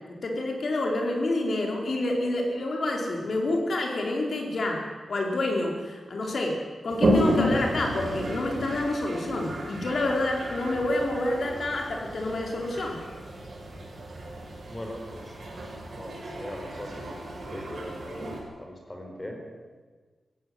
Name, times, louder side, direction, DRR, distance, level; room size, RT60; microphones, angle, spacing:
voice 1, 0.2-4.8 5.1-6.6 6.8-13.0, left 2 dB, 60° left, 1 dB, 4.9 m, -28 dB
Toilet flush, 6.9-18.4, equal, 55° right, 6.7 m, -32 dB
voice 2, 14.7-15.4 15.9-17.2 17.5-18.3 18.6-19.4, left 1 dB, 20° left, 2 dB, 4.6 m, -40 dB
16.5 x 16.5 x 9.8 m, 1.4 s
wide cardioid pair, 130°, 0 cm